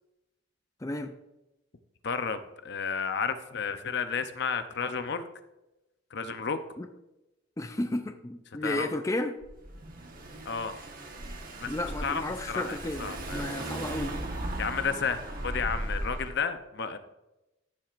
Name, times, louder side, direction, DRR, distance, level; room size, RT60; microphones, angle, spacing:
voice 1, 0.8-1.1 6.8-6.9 7.6-9.3 11.7-14.2, left 1 dB, 15° left, 6 dB, 0.4 m, -33 dB
voice 2, 2.0-5.3 6.1-6.6 8.6-8.9 10.4-10.8 11.5-11.7 12.0-13.4 14.6-17.0, left 5 dB, 55° left, 9 dB, 0.6 m, -32 dB
Car / Engine, 9.4-16.3, right 1 dB, 45° right, 1.3 m, -37 dB
14.0 x 7.4 x 2.5 m, 0.96 s
head